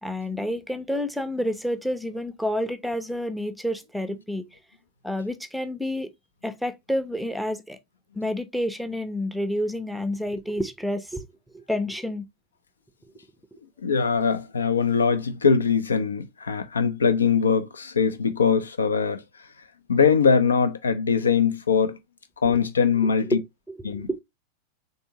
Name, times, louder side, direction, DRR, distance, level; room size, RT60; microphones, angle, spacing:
voice 1, 0.0-4.6 5.0-6.1 6.4-7.8 8.1-11.3 11.5-12.3 22.5-22.6 23.0-23.4 23.7-24.2, equal, ahead, 0.6 m, -29 dB
voice 2, 13.8-19.2 19.9-22.0 22.4-23.4 23.8-24.1, left 6 dB, 70° left, 0.6 m, -22 dB
3.9 x 3.5 x 2.7 m
figure-of-eight pair, 90°, 0 cm